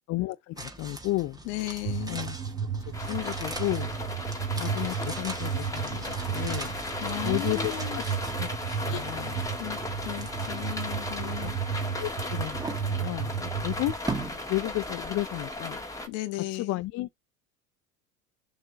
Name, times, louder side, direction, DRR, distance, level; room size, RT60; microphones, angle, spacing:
voice 1, 0.1-1.4 2.1-2.3 2.8-3.9 4.6-6.7 7.2-8.0 8.4-8.5 8.8-9.4 11.4-11.5 11.9-13.9 14.5-15.8 16.5-17.2, left 18 dB, 40° left, 0.5 m, -33 dB
sound 1, 0.6-15.7 16.0-16.1, right 2 dB, 10° right, 1.8 m, -42 dB
voice 2, 1.5-2.2 6.9-8.0 8.9-9.0 9.6-11.6 16.1-16.7, left 17 dB, 65° left, 1.3 m, -36 dB
sound 2, 1.8-13.9, right 7 dB, 80° right, 3.7 m, -33 dB
sound 3, 2.9-16.1, left 2 dB, 10° left, 1.8 m, -36 dB
6.9 x 6.5 x 3.6 m
hypercardioid pair, 80°, 42 cm